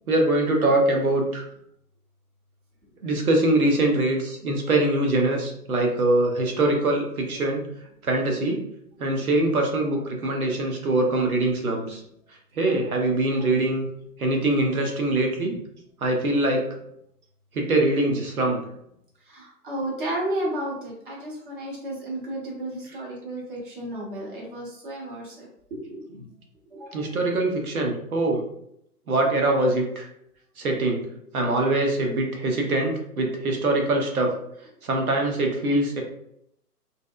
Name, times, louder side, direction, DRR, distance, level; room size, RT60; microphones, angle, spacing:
voice 1, 0.1-1.4 3.0-7.7 8.0-8.6 9.0-12.0 12.6-13.9 14.2-15.6 16.0-16.7 17.5-18.6 26.9-28.4 29.1-30.1 30.6-31.1 31.3-34.3 34.8-36.0, right 2 dB, 60° right, 2 dB, 0.7 m, -23 dB
voice 2, 19.2-25.5 25.8-26.1 26.7-27.1, right 1 dB, 35° right, -4 dB, 0.8 m, -33 dB
2.7 x 2.0 x 2.3 m, 0.74 s
figure-of-eight pair, 135°, 48 cm